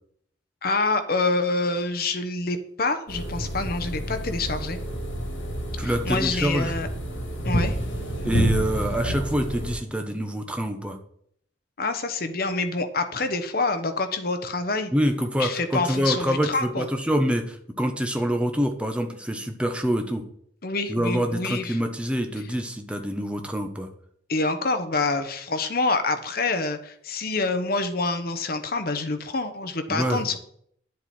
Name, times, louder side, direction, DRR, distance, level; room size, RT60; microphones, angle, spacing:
voice 1, 0.6-4.8 5.8-6.9 7.4-7.7 11.8-14.9 15.4-16.9 20.6-21.8 24.3-30.4, left 3 dB, 50° left, 8 dB, 1.0 m, -26 dB
sound 1, 3.1-9.8, equal, 85° left, 3.1 m, -28 dB
voice 2, 5.8-6.7 8.2-11.0 14.9-20.2 20.9-23.9 29.9-30.2, equal, 5° right, 5 dB, 1.0 m, -26 dB
10.0 x 7.7 x 4.3 m, 0.67 s
head